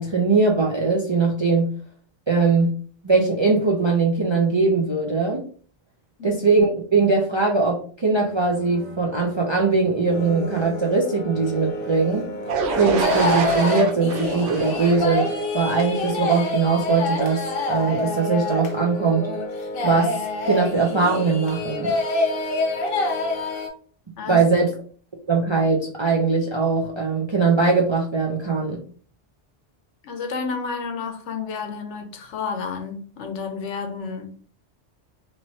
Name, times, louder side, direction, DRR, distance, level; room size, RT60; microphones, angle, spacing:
voice 1, 0.0-1.7 2.3-2.7 3.0-5.4 6.2-12.3 12.7-19.3 19.8-20.1 20.4-21.9 24.3-24.7 25.3-28.8, right 4 dB, 45° right, 0.4 m, -21 dB
sound 1, 8.2-15.0, right 3 dB, 60° right, 1.2 m, -41 dB
sound 2, 10.1-23.7, left 2 dB, 60° left, 0.8 m, -27 dB
sound 3, 12.5-16.4, right 4 dB, 90° right, 1.0 m, -27 dB
voice 2, 30.0-34.3, left 5 dB, 85° left, 1.0 m, -31 dB
3.0 x 3.0 x 2.7 m
omnidirectional pair, 1.2 m